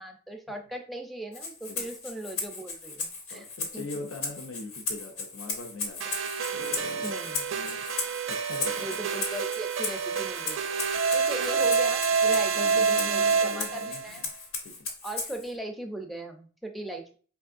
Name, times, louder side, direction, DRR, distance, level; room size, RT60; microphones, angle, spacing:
voice 1, 0.0-3.5 3.7-4.1 7.0-7.5 8.8-10.6 11.1-14.2 15.0-17.2, right 1 dB, ahead, 3 dB, 0.5 m, -38 dB
Rattle (instrument), 1.3-15.5, left 4 dB, 90° left, 1.0 m, -37 dB
voice 2, 3.3-6.2 6.5-7.1 7.6-7.8 8.3-8.9 12.3-14.3 14.6-14.7, left 3 dB, 75° left, 3 dB, 0.5 m, -41 dB
sound 1, 6.0-14.1, right 5 dB, 65° right, 0.4 m, -27 dB
4.6 x 3.1 x 2.5 m, 0.42 s
head